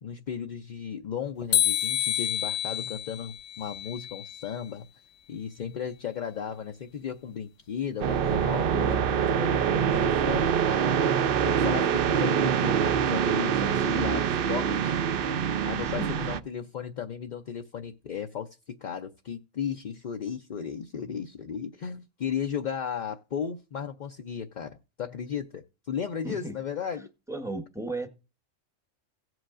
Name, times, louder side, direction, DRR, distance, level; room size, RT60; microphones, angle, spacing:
voice 1, 0.0-4.9 5.3-11.0 11.4-14.2 14.5-15.0 15.6-27.1, left 7 dB, 50° left, 0.5 m, -35 dB
sound 1, 1.5-4.6, left 11 dB, 70° left, 1.0 m, -29 dB
sound 2, 8.0-16.4, right 8 dB, 55° right, 0.7 m, -25 dB
voice 2, 13.7-14.3 15.8-16.1 26.2-26.6 27.0-28.1, right 1 dB, 5° right, 0.8 m, -36 dB
17.0 x 7.8 x 2.5 m
omnidirectional pair, 1.3 m